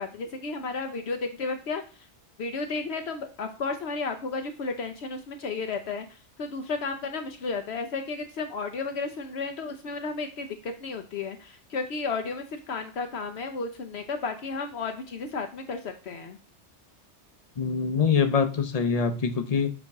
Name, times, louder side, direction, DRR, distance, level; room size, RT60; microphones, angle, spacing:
voice 1, 0.0-2.1 2.4-16.4, left 4 dB, 65° left, 6 dB, 0.9 m, -33 dB
voice 2, 17.6-19.7, left 6 dB, 40° left, 8 dB, 0.7 m, -24 dB
7.1 x 4.4 x 3.5 m, 0.37 s
omnidirectional pair, 1.2 m